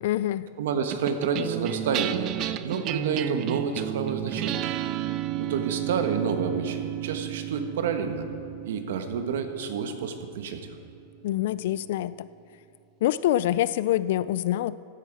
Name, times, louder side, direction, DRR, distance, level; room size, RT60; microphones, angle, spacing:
voice 1, 0.0-0.5 11.2-12.3 13.0-14.8, left 13 dB, 60° left, 17 dB, 0.3 m, -25 dB
voice 2, 0.6-2.3 2.6-4.6 5.3-8.3 8.7-10.6, right 6 dB, 75° right, 7 dB, 1.2 m, -29 dB
sound 1, 0.9-11.5, right 13 dB, 35° right, 0.4 m, -33 dB
15.5 x 9.1 x 4.7 m, 2.5 s
supercardioid pair, 160°, 0 cm